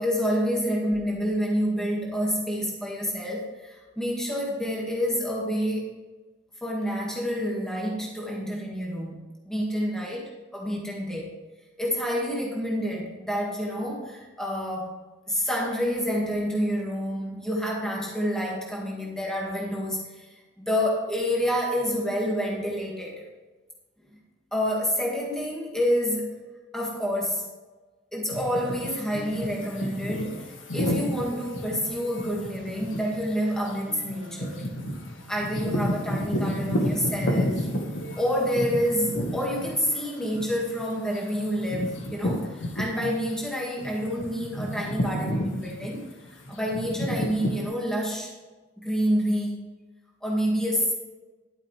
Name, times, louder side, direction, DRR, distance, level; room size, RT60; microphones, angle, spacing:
voice 1, 0.0-5.9 6.6-9.2 9.5-11.3 11.8-15.0 15.3-23.3 24.1-24.2 24.5-26.4 26.7-27.5 28.1-34.7 35.3-37.7 38.1-48.3 48.8-49.6 50.2-50.9, equal, 5° left, -3 dB, 1.9 m, -28 dB
sound 1, 28.3-43.4 43.8-47.6, equal, 80° left, 1.6 m, -31 dB
11.5 x 9.2 x 3.3 m, 1.2 s
head